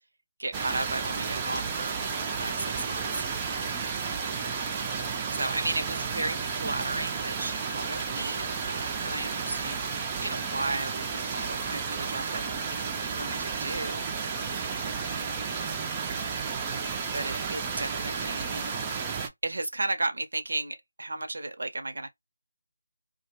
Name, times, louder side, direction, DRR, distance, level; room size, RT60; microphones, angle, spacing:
voice 1, 0.4-2.0 2.3-4.0 5.3-9.8 10.2-14.4 14.8-15.6 17.1-18.8 19.4-22.1, right 2 dB, 70° right, 0.6 m, -35 dB
sound 1, 0.5-19.3, right 5 dB, 20° right, 0.4 m, -32 dB
2.1 x 2.0 x 2.9 m
figure-of-eight pair, 160°, 0 cm